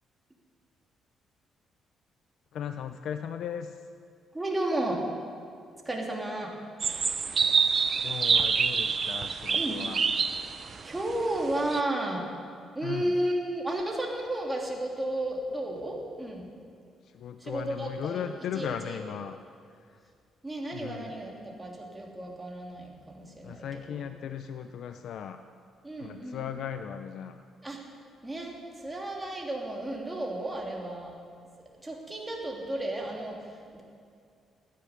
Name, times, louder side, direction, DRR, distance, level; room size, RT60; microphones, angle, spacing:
voice 1, 2.5-3.8 8.0-10.0 12.8-13.1 17.0-19.4 19.7-20.0 20.7-21.1 23.4-25.4 26.0-27.4, left 8 dB, 70° left, 9 dB, 0.6 m, -37 dB
voice 2, 4.3-5.0 5.8-6.5 9.5-9.8 10.8-12.3 12.7-16.5 17.4-18.2 18.5-19.0 20.4-24.0 25.8-26.4 27.6-27.8 28.2-31.1 31.8-33.8, right 1 dB, 15° right, -1 dB, 3.0 m, -33 dB
sound 1, 6.8-11.8, right 5 dB, 45° right, 0.7 m, -27 dB
13.0 x 10.0 x 9.6 m, 2.3 s
cardioid pair, 90°, 0 cm